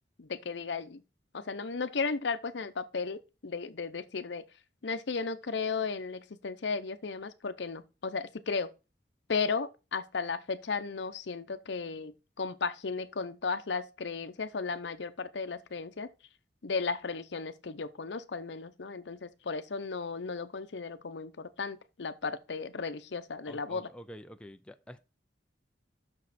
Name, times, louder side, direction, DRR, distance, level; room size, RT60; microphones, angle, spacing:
voice 1, 0.2-1.0 1.3-4.4 4.8-8.7 9.3-16.1 16.6-23.9, left 4 dB, 75° left, 0.7 m, -35 dB
voice 2, 23.5-25.0, equal, 5° left, 0.4 m, -48 dB
6.4 x 6.3 x 4.1 m
head